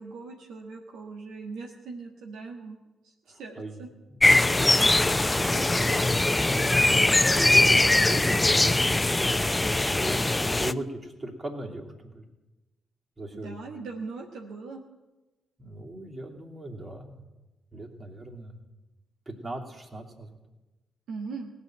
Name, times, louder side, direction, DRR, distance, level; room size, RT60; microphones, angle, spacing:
voice 1, 0.0-2.8 3.0-3.9 13.3-14.8 21.1-21.5, right 4 dB, 70° right, 0 dB, 1.4 m, -40 dB
voice 2, 3.3-3.8 4.1-12.2 13.2-13.6 15.6-17.2 17.7-18.6 19.3-20.4, right 1 dB, 35° right, 0 dB, 2.9 m, -38 dB
sound 1, 4.2-10.7, left 2 dB, 20° left, 0.6 m, -21 dB
18.5 x 7.0 x 9.2 m, 1.1 s
hypercardioid pair, 40°, 0 cm